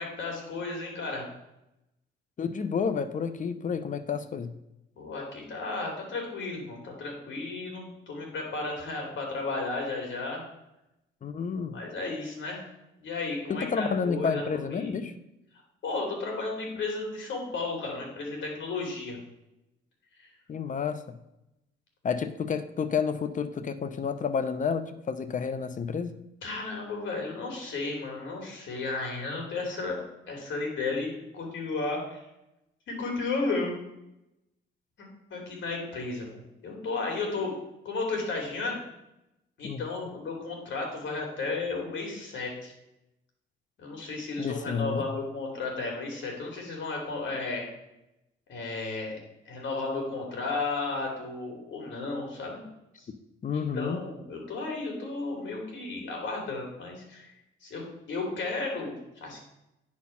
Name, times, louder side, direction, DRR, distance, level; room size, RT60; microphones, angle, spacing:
voice 1, 0.0-1.3 5.0-10.4 11.7-12.7 13.0-14.4 14.7-15.0 15.8-19.2 20.2-20.3 26.4-30.0 30.3-32.3 32.9-33.7 35.0-37.5 37.8-38.8 39.6-42.7 43.8-47.7 48.5-49.2 49.5-52.6 53.0-53.1 53.5-57.3 57.6-57.8 58.1-59.4, left 3 dB, 70° left, 1 dB, 2.9 m, -33 dB
voice 2, 2.4-4.6 11.2-11.8 13.5-15.1 20.5-21.2 22.0-26.1 39.6-39.8 44.4-45.1 53.4-54.0, left 6 dB, 40° left, 12 dB, 0.7 m, -30 dB
9.7 x 4.3 x 5.6 m, 0.89 s
cardioid pair, 90°, 20 cm